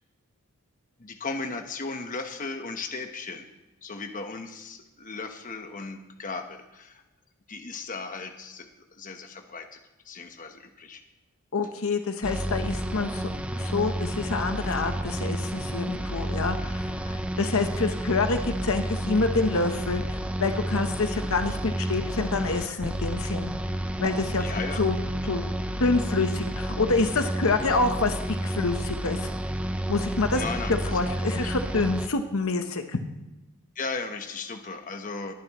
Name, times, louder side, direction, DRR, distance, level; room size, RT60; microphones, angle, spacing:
voice 1, 1.0-3.5 3.8-7.0 7.5-9.8 10.0-11.0 24.4-24.8 30.3-31.0 33.7-35.3, left 3 dB, 35° left, 5 dB, 1.0 m, -36 dB
voice 2, 11.5-13.3 13.6-23.5 24.0-24.4 24.8-25.0 25.2-25.4 25.8-29.3 29.9-30.4 30.7-33.0, left 3 dB, 65° left, 7 dB, 0.9 m, -27 dB
sound 1, 12.2-32.1, right 1 dB, 5° right, 0.5 m, -30 dB
21.0 x 9.1 x 3.0 m, 1.0 s
head